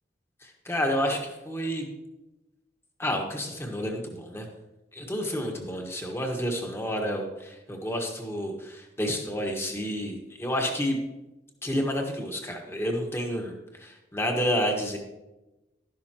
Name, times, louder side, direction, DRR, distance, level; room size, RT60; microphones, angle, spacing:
voice 1, 0.4-1.9 3.0-4.4 4.9-11.0 11.6-15.0, equal, 15° left, 2 dB, 1.5 m, -30 dB
12.0 x 11.5 x 3.0 m, 1.0 s
head